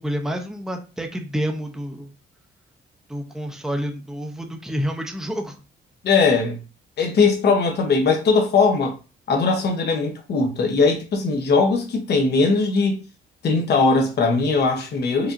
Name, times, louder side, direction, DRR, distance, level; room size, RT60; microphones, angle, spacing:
voice 1, 0.0-2.1 3.1-5.6, equal, ahead, 0.7 m, -28 dB
voice 2, 6.0-6.6 7.0-8.9 9.3-13.0 13.4-15.3, left 4 dB, 55° left, 0.9 m, -19 dB
4.8 x 2.8 x 2.6 m
cardioid pair, 90°, 20 cm